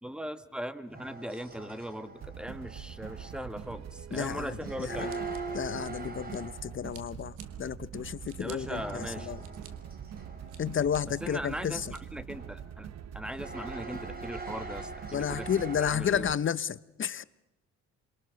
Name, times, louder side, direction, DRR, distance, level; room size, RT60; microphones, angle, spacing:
voice 1, 0.0-5.1 8.4-9.3 11.1-12.9 13.1-15.5 15.8-16.3, equal, 5° right, 1.7 m, -39 dB
sound 1, 0.9-3.8 4.6-6.9 8.6-12.0 12.3-12.7 13.2-15.9, right 3 dB, 30° right, 3.9 m, -43 dB
sound 2, 2.2-16.4, right 9 dB, 60° right, 1.0 m, -44 dB
voice 2, 4.1-5.2 5.5-9.4 10.6-11.9 15.1-17.2, left 8 dB, 40° left, 0.9 m, -32 dB
Scissors, 5.1-6.6 6.9-7.5 8.0-8.6 9.1-9.7 10.2-11.0 11.5-12.0, right 8 dB, 85° right, 2.5 m, -52 dB
28.0 x 22.5 x 6.5 m
cardioid pair, 90°, 30 cm